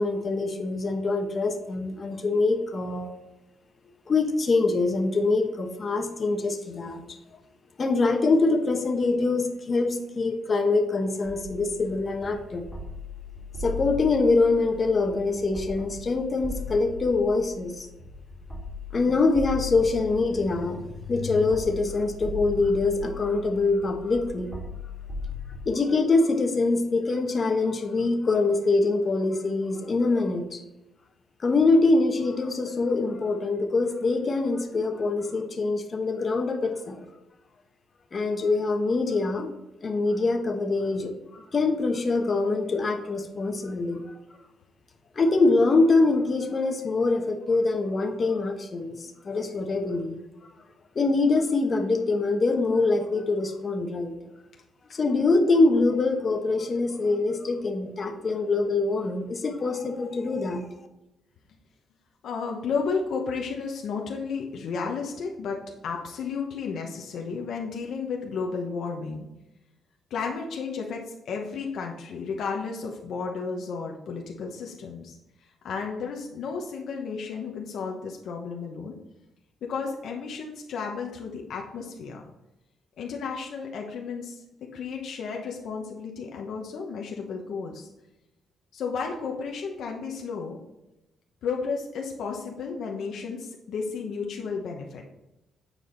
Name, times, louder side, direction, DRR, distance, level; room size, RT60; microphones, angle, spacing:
voice 1, 0.0-3.1 4.1-7.2 7.8-12.7 13.6-17.9 18.9-20.8 21.1-24.5 25.6-30.6 31.4-37.1 38.1-39.5 39.8-44.2 45.1-50.2 50.9-54.1 54.9-60.7, left 3 dB, 35° left, 5 dB, 1.2 m, -24 dB
sound 1, 11.2-25.6, left 4 dB, 10° right, 2.6 m, -39 dB
voice 2, 62.2-69.3 70.1-75.2 75.6-79.0 79.6-82.2 83.0-84.4 84.7-87.9 88.7-90.6 91.4-95.0, left 5 dB, 70° left, 1 dB, 1.0 m, -33 dB
9.0 x 4.8 x 4.0 m, 0.94 s
cardioid pair, 100°, 0 cm